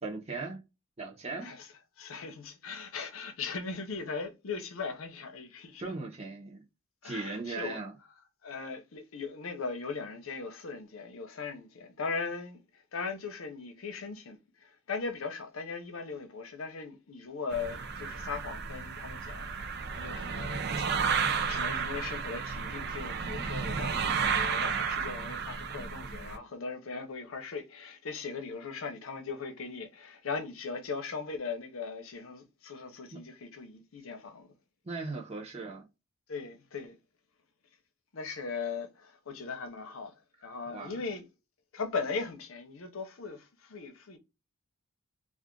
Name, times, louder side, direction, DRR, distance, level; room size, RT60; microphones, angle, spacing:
voice 1, 0.0-0.6 1.0-1.5 5.8-6.6 7.0-7.9 33.1-33.2 34.8-35.8 40.7-40.9, right 3 dB, 30° right, 0.9 m, -38 dB
voice 2, 2.0-5.9 7.0-7.8 8.4-21.1 21.5-34.5 36.3-37.0 38.1-41.2 41.7-44.2, left 4 dB, 70° left, 0.7 m, -39 dB
sound 1, 17.5-26.4, right 6 dB, 50° right, 0.5 m, -32 dB
2.5 x 2.4 x 3.6 m
head